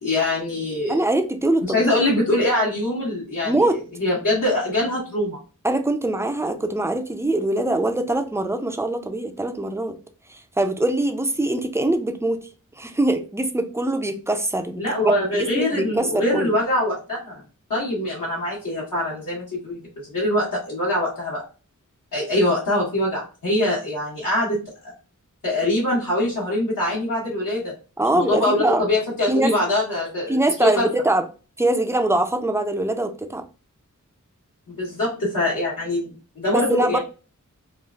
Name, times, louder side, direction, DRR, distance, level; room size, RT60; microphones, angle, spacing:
voice 1, 0.0-1.0 1.7-3.5 4.0-5.4 14.8-17.4 17.7-21.4 22.1-24.9 25.4-27.7 28.1-30.9 34.7-37.0, left 1 dB, 75° left, 1.3 m, -23 dB
voice 2, 0.9-1.9 3.4-3.8 5.6-10.0 10.6-12.4 12.8-16.5 28.0-28.8 29.3-29.5 30.3-31.3 31.6-33.4 36.5-37.0, right 1 dB, 10° right, 0.4 m, -23 dB
3.1 x 2.4 x 2.3 m
wide cardioid pair, 90°, 32 cm